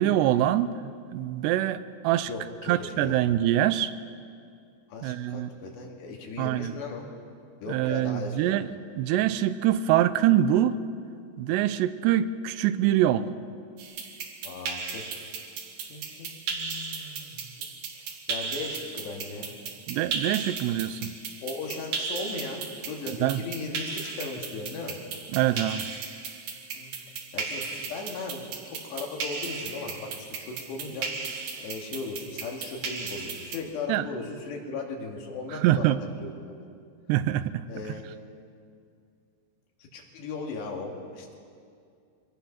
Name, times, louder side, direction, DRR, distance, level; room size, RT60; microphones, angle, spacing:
voice 1, 0.0-2.3 2.7-3.9 5.0-5.5 6.4-6.8 7.7-8.7 9.0-10.8 11.4-13.3 19.9-21.1 23.2-23.4 25.3-25.9 33.9-34.1 35.5-36.0 37.1-37.6, right 12 dB, 85° right, 14 dB, 2.8 m, -24 dB
voice 2, 2.3-3.2 4.9-7.1 7.6-8.5 14.4-15.1 15.9-17.7 18.3-19.5 21.4-25.0 26.7-31.1 31.6-36.3 36.6-36.7 37.7-38.0 39.9-41.4, left 3 dB, 80° left, 0 dB, 4.4 m, -37 dB
sound 1, 13.8-33.6, right 5 dB, 65° right, 2.9 m, -36 dB
24.5 x 19.0 x 5.9 m, 2.3 s
omnidirectional pair, 4.8 m